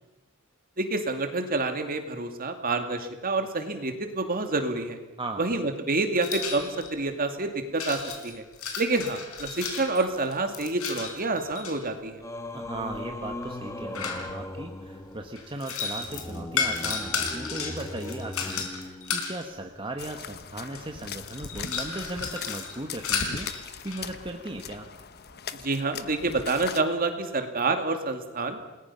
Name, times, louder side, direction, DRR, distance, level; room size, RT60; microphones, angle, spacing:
voice 1, 0.8-5.0 5.4-8.4 8.8-12.2 25.5-28.6, right 3 dB, 45° right, 6 dB, 2.4 m, -28 dB
voice 2, 5.2-5.6 12.5-24.9, right 2 dB, 25° right, 4 dB, 1.4 m, -37 dB
sound 1, 6.2-7.0 7.8-11.8 12.7-14.6 15.4-19.4 20.3-20.4 20.7-24.1, left 5 dB, 85° left, 4.0 m, -33 dB
Singing, 12.2-19.6, left 1 dB, 15° left, 1.4 m, -39 dB
sound 2, 20.0-26.8, left 6 dB, 50° left, 1.0 m, -40 dB
28.5 x 20.5 x 5.7 m, 1.1 s
head